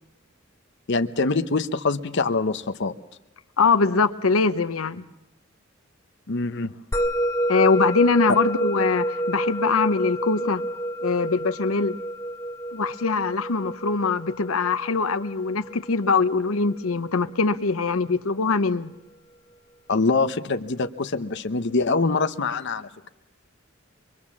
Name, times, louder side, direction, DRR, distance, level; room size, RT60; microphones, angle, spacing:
voice 1, 0.9-3.0 6.3-6.7 19.9-22.9, left 3 dB, 60° left, 8 dB, 0.8 m, -24 dB
voice 2, 3.6-5.0 7.5-10.6 11.0-12.0 12.7-18.9, left 4 dB, 85° left, 11 dB, 0.8 m, -22 dB
Musical instrument, 6.9-17.5, right 1 dB, 15° left, 1.1 m, -29 dB
24.0 x 23.5 x 7.3 m, 0.88 s
head